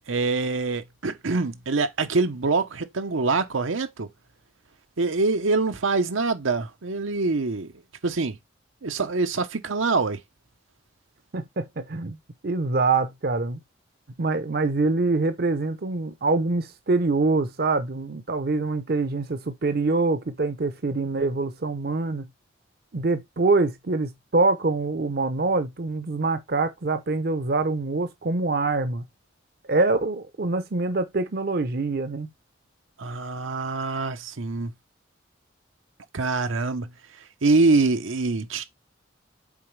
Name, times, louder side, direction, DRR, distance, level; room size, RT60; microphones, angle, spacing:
voice 1, 0.1-4.1 5.0-7.7 8.0-8.4 8.8-10.2 33.0-34.7 36.1-36.9 37.4-38.6, right 3 dB, 90° right, 0.8 m, -24 dB
voice 2, 11.3-12.2 12.4-13.6 14.2-22.3 22.9-29.0 29.7-32.3, right 3 dB, 50° right, 0.6 m, -25 dB
7.2 x 4.0 x 3.2 m
head